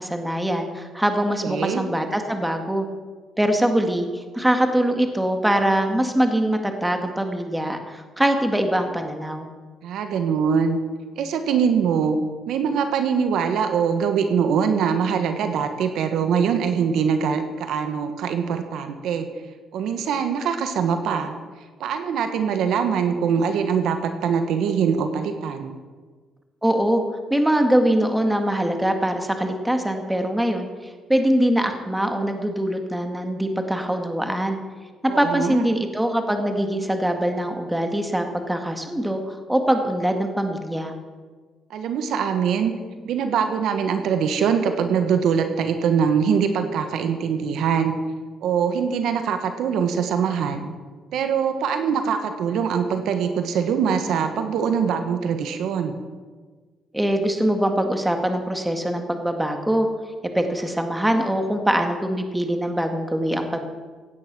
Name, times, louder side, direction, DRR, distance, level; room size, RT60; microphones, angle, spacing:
voice 1, 0.0-2.9 3.4-9.5 26.6-27.0 27.3-30.7 31.1-34.6 35.0-40.9 56.9-59.9 60.3-63.6, right 1 dB, 5° right, 5 dB, 1.9 m, -23 dB
voice 2, 1.4-1.8 9.8-10.8 11.2-12.2 12.5-19.3 19.7-21.3 21.8-25.8 35.1-35.6 41.7-42.7 43.0-48.0 48.4-50.7 51.1-56.0, right 7 dB, 80° right, 7 dB, 1.4 m, -23 dB
16.5 x 9.4 x 6.2 m, 1.4 s
cardioid pair, 90°, 0 cm